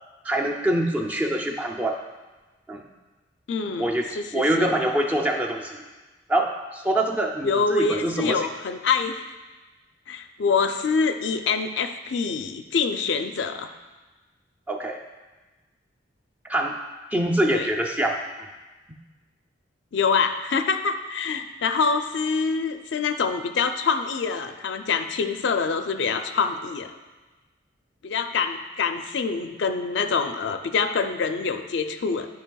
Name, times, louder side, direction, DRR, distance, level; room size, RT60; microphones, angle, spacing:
voice 1, 0.2-2.0 2.7-2.8 3.8-5.8 6.3-8.5 14.7-15.0 16.5-16.8 17.1-18.2, right 1 dB, 10° right, 1 dB, 0.4 m, -25 dB
voice 2, 3.5-4.8 7.4-9.3 10.1-13.7 17.5-17.7 19.9-26.9 28.0-32.3, left 5 dB, 65° left, 8 dB, 0.4 m, -25 dB
11.5 x 5.3 x 2.3 m, 1.2 s
head